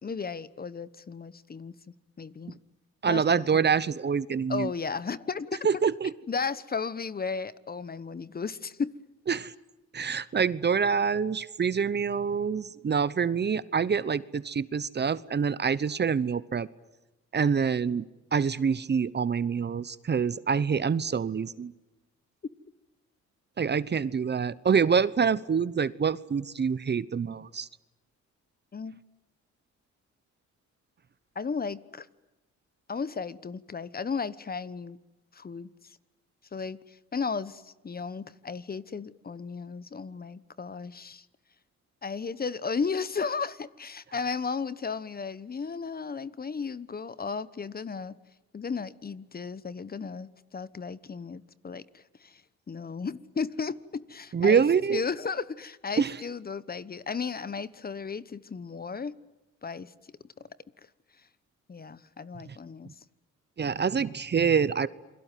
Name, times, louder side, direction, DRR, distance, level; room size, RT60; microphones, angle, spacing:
voice 1, 0.0-1.7 2.2-2.6 3.1-3.6 4.5-5.6 6.3-8.9 28.7-29.0 31.3-32.1 32.9-35.0 35.3-35.7 36.5-41.2 42.0-48.2 48.5-52.4 52.7-54.6 54.9-59.1 59.6-59.9 61.7-62.9, left 5 dB, 30° left, 17 dB, 1.1 m, -34 dB
voice 2, 3.0-4.7 5.6-6.1 9.3-9.5 9.9-16.7 17.3-18.0 18.3-21.7 23.6-27.7 54.3-55.0 56.0-56.1 63.6-64.9, right 6 dB, 35° right, 18 dB, 1.0 m, -26 dB
28.5 x 22.5 x 9.3 m, 1.0 s
cardioid pair, 90°, 30 cm